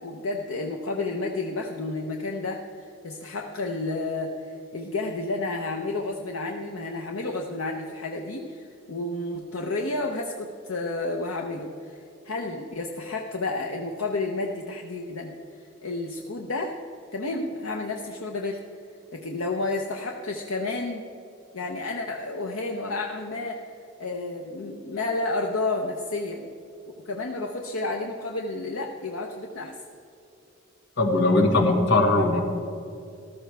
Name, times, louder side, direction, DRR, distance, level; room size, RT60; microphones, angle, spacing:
voice 1, 0.0-15.3 15.8-16.7 17.1-18.6 19.1-21.0 21.5-23.6 24.0-26.5 27.0-29.7, left 2 dB, 90° left, 2 dB, 0.8 m, -31 dB
voice 2, 31.0-32.4, left 2 dB, 60° left, 2 dB, 1.8 m, -20 dB
14.0 x 13.0 x 3.4 m, 2.7 s
head